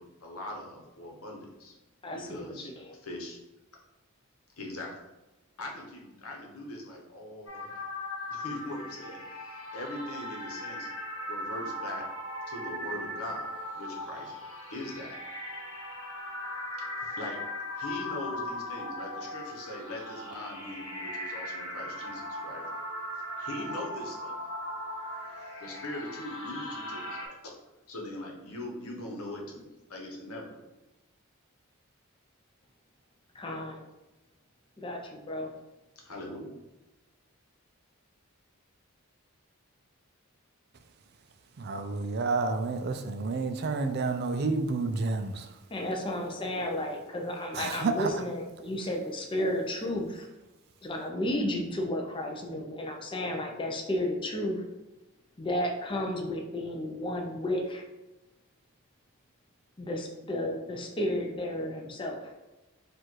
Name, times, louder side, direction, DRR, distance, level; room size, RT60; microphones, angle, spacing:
voice 1, 0.0-1.7 2.1-2.7 2.9-3.4 4.6-5.0 5.6-7.8 8.3-10.9 11.3-12.1 12.5-13.5 13.8-14.3 14.7-15.1 16.8-17.4 17.8-22.6 23.4-24.3 25.4-27.2 27.4-27.5 27.9-29.6 29.9-30.6 36.0-36.5, left 1 dB, 85° left, 0 dB, 1.1 m, -41 dB
voice 2, 2.0-2.9 33.3-33.8 34.8-35.5 45.7-50.3 50.8-54.6 55.4-57.8 59.8-62.3, left 1 dB, 25° left, 2 dB, 0.5 m, -33 dB
sound 1, 7.5-27.3, left 1 dB, 65° left, 1.4 m, -38 dB
voice 3, 41.6-45.5 47.5-48.1, right 3 dB, 50° right, 8 dB, 0.4 m, -30 dB
4.6 x 2.5 x 4.5 m, 1.1 s
head